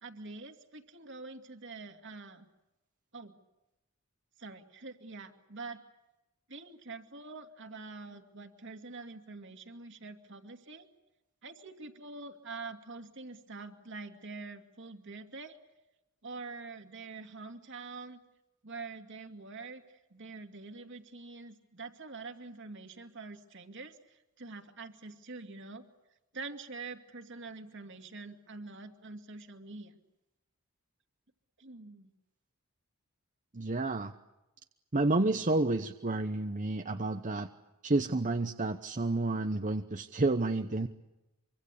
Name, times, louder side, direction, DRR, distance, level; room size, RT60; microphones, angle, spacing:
voice 1, 0.0-2.5 3.1-3.3 4.4-5.8 6.5-10.9 11.4-15.6 16.2-18.2 18.6-25.9 26.3-30.0 31.6-32.1, right 3 dB, 55° right, 6 dB, 2.6 m, -45 dB
voice 2, 33.5-34.1 34.9-37.5 37.8-40.9, right 2 dB, 35° right, 7 dB, 0.9 m, -30 dB
25.0 x 25.0 x 8.5 m, 0.96 s
head